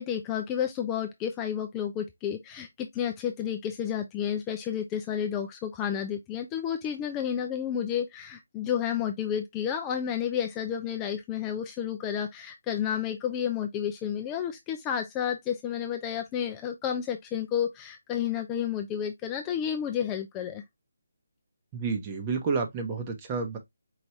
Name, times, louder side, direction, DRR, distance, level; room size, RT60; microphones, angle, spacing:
voice 1, 0.0-20.6, left 9 dB, 15° left, 0.5 m, -31 dB
voice 2, 21.7-23.6, right 4 dB, 25° right, 1.1 m, -30 dB
4.8 x 2.5 x 3.1 m
figure-of-eight pair, 155°, 0 cm